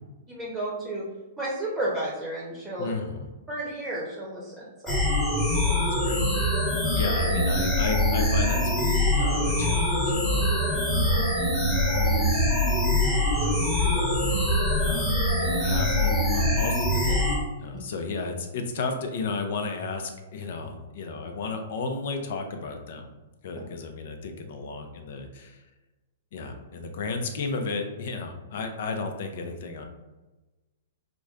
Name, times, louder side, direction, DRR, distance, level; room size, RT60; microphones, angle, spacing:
voice 1, 0.3-1.0 1.4-2.9 3.5-5.0 5.4-5.6, right 1 dB, 5° right, -5 dB, 0.9 m, -32 dB
voice 2, 2.8-3.3 5.6-6.6 6.9-14.5 14.8-15.1 15.4-17.3 17.6-23.1 23.4-25.6 26.3-29.9, left 4 dB, 60° left, 6 dB, 0.6 m, -34 dB
sound 1, 4.9-17.4, left 1 dB, 15° left, 1.2 m, -23 dB
4.9 x 2.2 x 2.4 m, 1.1 s
hypercardioid pair, 130°, 0 cm